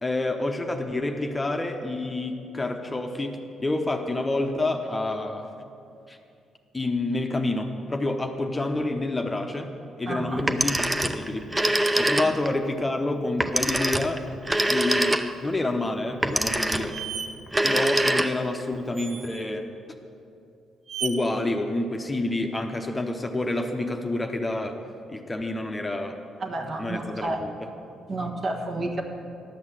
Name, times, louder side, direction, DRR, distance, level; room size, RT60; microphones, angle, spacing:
voice 1, 0.0-5.5 6.1-6.2 6.7-9.7 10.0-11.5 12.0-14.2 14.7-17.0 17.6-19.7 21.0-24.8 25.1-26.2 26.8-27.7, left 2 dB, 20° left, 4 dB, 0.8 m, -28 dB
voice 2, 10.1-10.4 26.4-27.4 28.1-29.0, right 2 dB, 45° right, 2 dB, 1.4 m, -30 dB
Telephone, 10.4-12.6 13.4-15.5 16.2-17.0 17.4-18.6, right 1 dB, 15° right, 0.6 m, -24 dB
sound 1, 16.3-16.4 16.9-17.3 19.0-19.5 20.9-21.1, right 7 dB, 65° right, 0.8 m, -34 dB
11.5 x 6.3 x 7.5 m, 2.6 s
cardioid pair, 90°, 0 cm